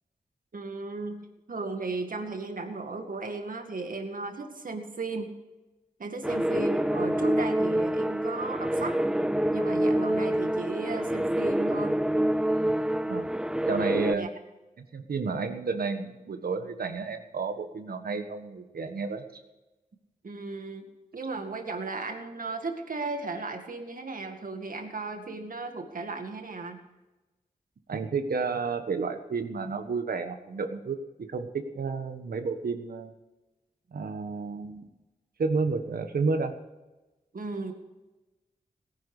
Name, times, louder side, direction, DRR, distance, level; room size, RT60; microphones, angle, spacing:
voice 1, 0.5-1.2 1.5-5.3 6.0-9.0 9.5-12.0 14.1-14.3 20.2-20.9 21.1-26.8 37.3-37.7, right 3 dB, 65° right, 5 dB, 2.1 m, -35 dB
sound 1, 6.2-14.1, right 1 dB, 5° right, 0.5 m, -27 dB
voice 2, 13.6-14.2 14.8-19.2 27.9-33.1 33.9-34.9 35.4-36.5, right 4 dB, 85° right, 7 dB, 1.4 m, -31 dB
17.5 x 10.5 x 5.0 m, 1.1 s
cardioid pair, 60°, 15 cm